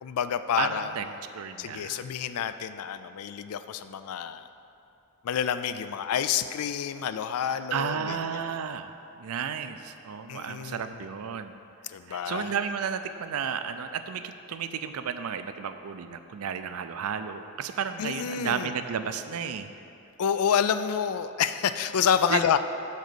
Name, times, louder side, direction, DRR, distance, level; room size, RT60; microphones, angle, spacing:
voice 1, 0.0-0.9 1.6-4.5 5.2-8.6 10.3-11.0 11.9-12.5 18.0-18.7 20.2-22.6, left 8 dB, 85° left, 12 dB, 0.4 m, -28 dB
voice 2, 0.6-1.1 1.3-2.1 7.5-11.5 12.1-19.7 22.3-22.6, right 7 dB, 80° right, 10 dB, 0.4 m, -33 dB
6.4 x 5.0 x 6.9 m, 2.7 s
head